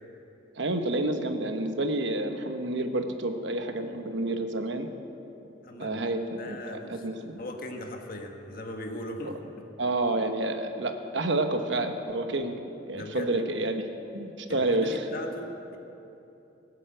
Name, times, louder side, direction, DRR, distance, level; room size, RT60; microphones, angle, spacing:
voice 1, 0.6-4.9 5.8-7.4 9.3-9.4 9.8-12.5 12.9-13.8 14.1-15.1, right 2 dB, 70° right, 6 dB, 1.1 m, -29 dB
voice 2, 5.6-6.1 6.4-7.0 7.4-9.3 12.9-13.3 14.5-15.8, left 1 dB, 50° left, 3 dB, 1.5 m, -38 dB
19.0 x 8.3 x 7.9 m, 2.9 s
head